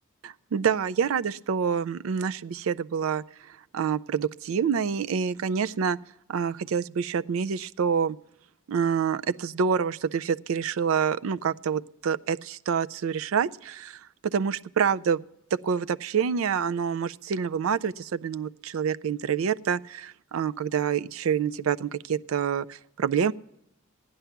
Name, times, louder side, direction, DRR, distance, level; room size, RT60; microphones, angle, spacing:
voice 1, 0.5-6.0 6.3-8.2 8.7-15.2 15.5-23.3, right 7 dB, 85° right, 16 dB, 0.4 m, -27 dB
15.5 x 10.0 x 5.8 m, 0.82 s
head